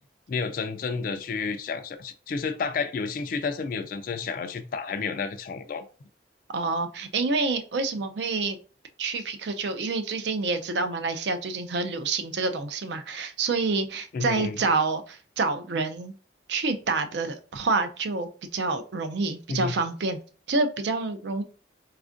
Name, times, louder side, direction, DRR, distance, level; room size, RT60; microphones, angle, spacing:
voice 1, 0.3-5.8 14.1-14.6 19.5-19.7, left 5 dB, 50° left, 0.3 m, -31 dB
voice 2, 6.5-8.6 9.0-16.1 16.5-20.2 20.5-21.4, right 3 dB, 70° right, 0.4 m, -28 dB
4.2 x 2.4 x 2.4 m
head